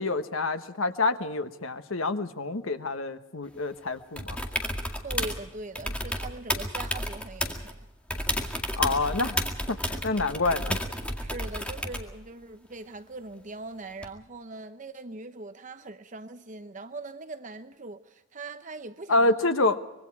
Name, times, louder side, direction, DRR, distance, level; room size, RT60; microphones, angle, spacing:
voice 1, 0.0-4.4 8.8-9.4 9.7-10.8 19.1-19.8, left 2 dB, 85° left, 9 dB, 1.3 m, -27 dB
sound 1, 4.2-5.4 5.8-7.7 8.1-12.1 14.0-14.1, equal, 5° left, 2.1 m, -32 dB
voice 2, 5.0-7.8 11.2-19.6, right 3 dB, 40° right, 9 dB, 0.8 m, -41 dB
25.0 x 23.0 x 4.8 m, 0.99 s
head